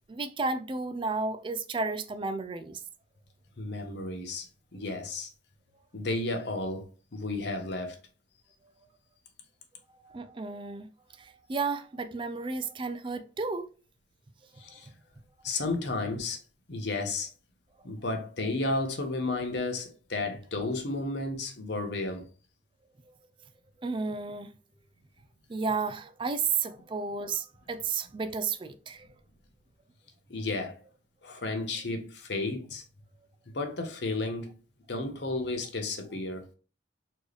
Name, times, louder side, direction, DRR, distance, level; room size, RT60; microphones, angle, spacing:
voice 1, 0.1-2.8 10.0-10.9 11.2-13.7 14.7-14.8 23.8-24.5 25.5-29.1, right 4 dB, 25° right, 0.3 m, -32 dB
voice 2, 3.6-4.5 4.7-5.3 5.9-6.9 7.1-8.0 14.6-14.9 15.4-16.4 16.7-17.3 17.8-22.2 30.3-30.8 31.2-32.8 33.5-34.5 34.9-36.5, left 2 dB, 60° left, 0.9 m, -32 dB
4.4 x 3.1 x 3.3 m
head